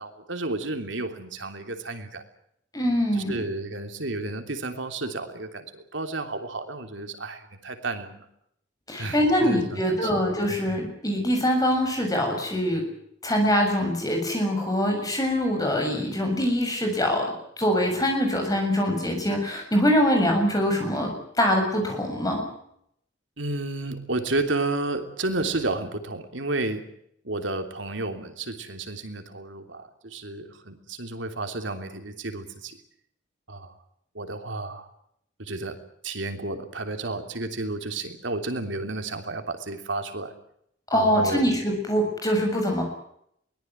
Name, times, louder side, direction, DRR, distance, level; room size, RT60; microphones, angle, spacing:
voice 1, 0.0-2.2 3.2-8.3 9.0-10.3 23.4-26.8 27.2-32.8 33.5-33.7 34.1-34.9 35.4-35.8 36.0-40.3 40.9-41.4, right 2 dB, 85° right, 6 dB, 3.2 m, -31 dB
voice 2, 2.7-3.4 8.9-12.8 13.2-17.3 17.6-22.4 40.9-42.8, equal, 20° left, 2 dB, 7.2 m, -24 dB
23.0 x 19.0 x 9.3 m, 0.73 s
head